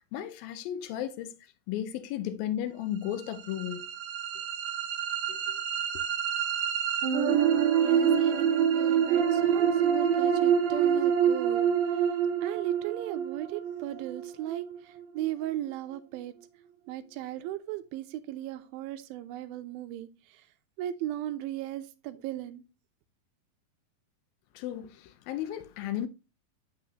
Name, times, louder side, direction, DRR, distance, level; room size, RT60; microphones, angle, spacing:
voice 1, 0.0-1.4 1.7-3.9 5.3-5.6 24.6-26.1, left 11 dB, 80° left, 2.4 m, -34 dB
sound 1, 3.2-15.2, right 8 dB, 65° right, 2.3 m, -26 dB
voice 2, 7.7-12.1 12.4-16.3 16.9-20.4 20.8-22.6, right 13 dB, 80° right, 2.4 m, -37 dB
7.9 x 6.1 x 2.8 m
omnidirectional pair, 4.3 m